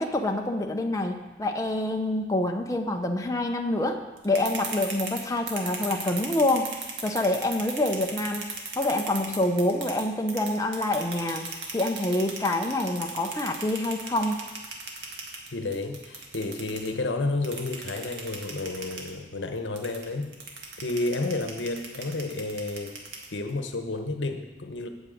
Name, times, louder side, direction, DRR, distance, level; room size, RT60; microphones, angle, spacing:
voice 1, 0.0-6.7 7.0-8.5 8.8-11.5 11.7-14.4, left 1 dB, 20° left, 3 dB, 0.7 m, -26 dB
sound 1, 4.2-10.0 10.3-16.9 17.4-19.1 19.8-23.5, right 4 dB, 70° right, 2.0 m, -36 dB
voice 2, 15.5-20.3 20.8-22.9 23.3-24.9, left 2 dB, 80° left, 6 dB, 1.1 m, -31 dB
8.9 x 7.2 x 8.5 m, 1.2 s
head